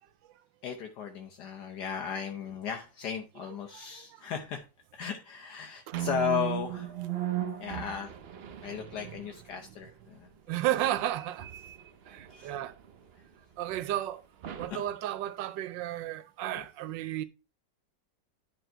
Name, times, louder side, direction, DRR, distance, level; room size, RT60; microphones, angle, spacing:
voice 1, 0.6-4.6 4.9-6.9 7.6-8.1 8.6-10.6 12.3-12.5 14.7-14.8, left 8 dB, 70° left, 1.3 m, -36 dB
sound 1, 5.9-9.5 10.8-13.1 13.7-13.9 14.4-14.7, right 13 dB, 70° right, 0.5 m, -37 dB
voice 2, 10.5-11.5 12.1-12.7 13.6-14.2 14.6-17.2, right 13 dB, 85° right, 1.3 m, -33 dB
10.5 x 3.8 x 4.4 m
omnidirectional pair, 1.9 m